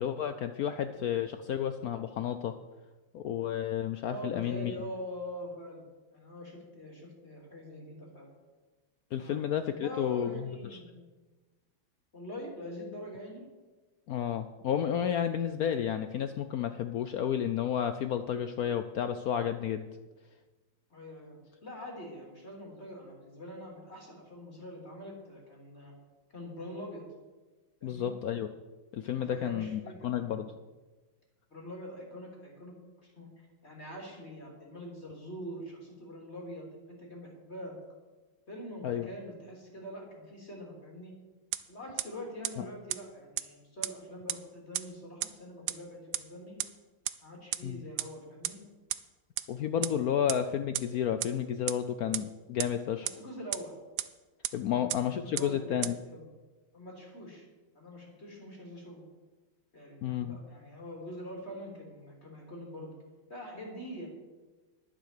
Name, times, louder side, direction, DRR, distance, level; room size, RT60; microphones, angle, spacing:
voice 1, 0.0-2.6 3.1-4.7 9.1-10.8 14.1-19.9 27.8-28.5 28.9-30.5 38.8-39.1 42.6-42.7 47.6-47.8 49.5-53.1 54.5-56.0 60.0-60.4, left 9 dB, 80° left, 9 dB, 0.8 m, -31 dB
voice 2, 4.1-5.8 6.1-8.3 9.2-9.4 9.8-11.0 12.1-13.5 20.9-26.0 26.3-27.1 27.8-28.1 29.1-30.5 31.5-32.7 33.0-33.3 33.6-37.7 38.5-41.1 41.7-46.6 47.2-48.6 53.0-53.7 54.7-56.3 56.7-57.4 57.7-59.0 59.7-62.9 63.3-64.1, equal, 30° left, -1 dB, 3.2 m, -44 dB
sound 1, 41.5-41.6 42.0-42.1 42.4-42.5 42.9-43.0 43.4-43.5 43.8-43.9 44.3-44.4 44.7-44.8 45.2-45.3 45.7-45.8 46.1-46.2 46.6-46.7 47.0-47.1 47.5-47.6 48.0-48.1 48.4-48.5 48.9-49.0 49.4-49.5 49.8-49.9 50.3-50.4 50.7-50.8 51.2-51.3 51.7-51.8 52.1-52.2 52.6-52.7 53.1-53.2 53.5-53.6 54.0-54.1 54.4-54.5 54.9-55.0 55.4-55.5 55.8-55.9, right 14 dB, 75° right, 1.3 m, -30 dB
11.5 x 10.0 x 6.6 m, 1.2 s
omnidirectional pair, 2.2 m